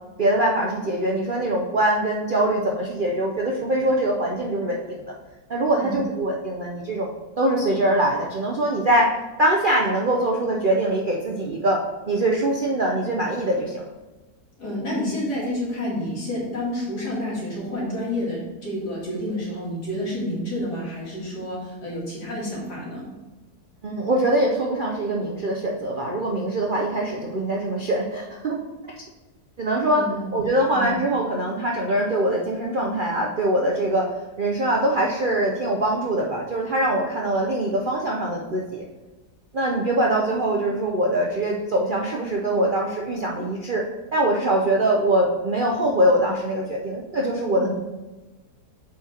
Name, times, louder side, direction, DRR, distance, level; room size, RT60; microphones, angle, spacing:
voice 1, 0.2-5.1 5.5-9.1 9.4-13.9 23.8-28.6 29.6-30.0 30.3-34.1 34.4-38.8 39.5-43.8 44.1-47.7, right 1 dB, 55° right, -1 dB, 0.6 m, -23 dB
voice 2, 14.6-23.1 29.9-30.3 30.7-31.0 47.5-47.7, left 1 dB, 80° left, -5 dB, 2.8 m, -29 dB
7.4 x 4.4 x 4.3 m, 1.2 s
omnidirectional pair, 1.7 m